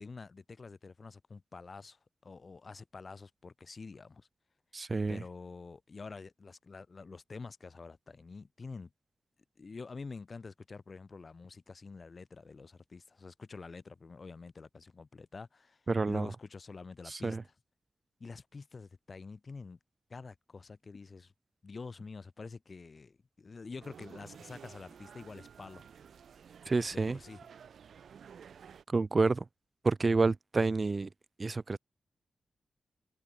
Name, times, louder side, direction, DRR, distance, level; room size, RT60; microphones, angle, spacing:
voice 1, 0.0-4.3 5.1-8.9 9.6-17.4 18.2-19.8 20.1-21.3 21.6-25.8 26.9-27.4, left 4 dB, 40° left, 3.3 m, -47 dB
voice 2, 4.7-5.2 15.9-16.3 17.1-17.4 26.7-27.2 28.9-29.5 29.8-31.1 31.4-31.8, right 3 dB, 30° right, 1.1 m, -29 dB
sound 1, 23.8-28.8, right 7 dB, 85° right, 7.3 m, -53 dB
wide cardioid pair, 150°, 0 cm